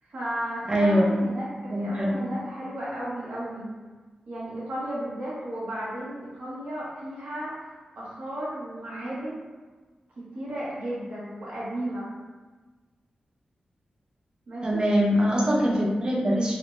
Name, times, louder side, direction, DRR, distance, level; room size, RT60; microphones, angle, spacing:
voice 1, 0.0-3.7 4.3-9.3 10.3-12.1 14.5-14.8, right 1 dB, 75° right, -8 dB, 1.3 m, -34 dB
voice 2, 0.7-1.1 1.7-2.2 14.6-16.5, equal, 35° right, -3 dB, 0.6 m, -23 dB
3.4 x 2.7 x 2.5 m, 1.3 s
wide cardioid pair, 115°, 3 cm